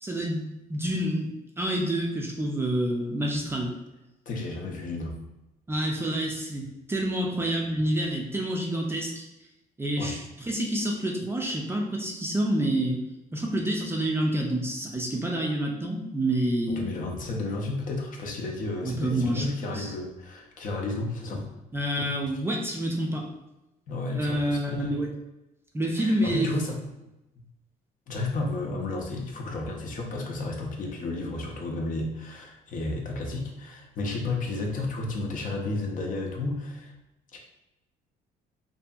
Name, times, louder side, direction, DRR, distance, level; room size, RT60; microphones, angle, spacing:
voice 1, 0.0-1.3 1.6-3.7 5.7-9.3 9.8-13.0 13.3-16.9 18.8-19.9 21.7-23.3 24.1-25.1 25.7-26.5, right 1 dB, 15° right, 0 dB, 0.4 m, -28 dB
voice 2, 4.3-5.2 10.0-10.2 16.7-21.5 22.0-22.1 23.9-25.0 26.0-26.8 27.4-27.5 28.1-36.9 37.3-37.4, left 2 dB, 50° left, 1 dB, 0.6 m, -32 dB
2.6 x 2.6 x 2.3 m, 0.95 s
cardioid pair, 110°, 17 cm